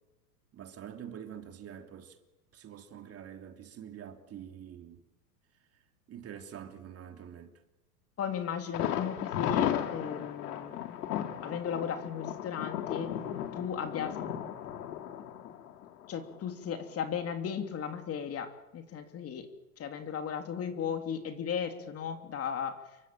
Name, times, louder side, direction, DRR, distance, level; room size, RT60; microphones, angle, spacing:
voice 1, 0.5-2.2 2.5-5.0 6.1-7.6, right 9 dB, 30° right, 3.3 m, -46 dB
voice 2, 8.2-11.0 11.4-13.1 13.6-14.2 15.4-15.5 16.1-19.5 19.8-22.8, left 7 dB, 30° left, 3.1 m, -36 dB
Thunder, 8.7-16.5 16.8-16.9 17.3-17.4, left 10 dB, 75° left, 3.3 m, -35 dB
29.0 x 23.5 x 7.8 m
hypercardioid pair, 115°, 47 cm